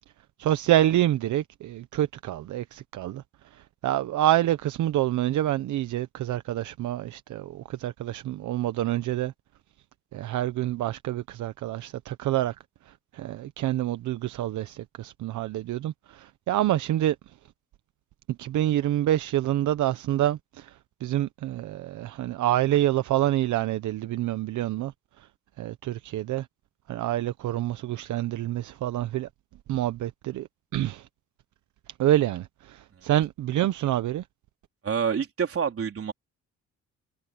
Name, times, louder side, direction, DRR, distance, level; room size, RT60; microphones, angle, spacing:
voice 1, 0.4-3.2 3.5-9.3 10.1-12.6 12.9-17.2 18.4-25.3 25.6-26.5 26.9-29.3 29.7-30.5 30.7-31.1 32.0-34.2, right 13 dB, 75° right, 1.0 m, -27 dB
voice 2, 34.8-36.1, right 7 dB, 50° right, 3.9 m, -27 dB
cardioid pair, 90°, 30 cm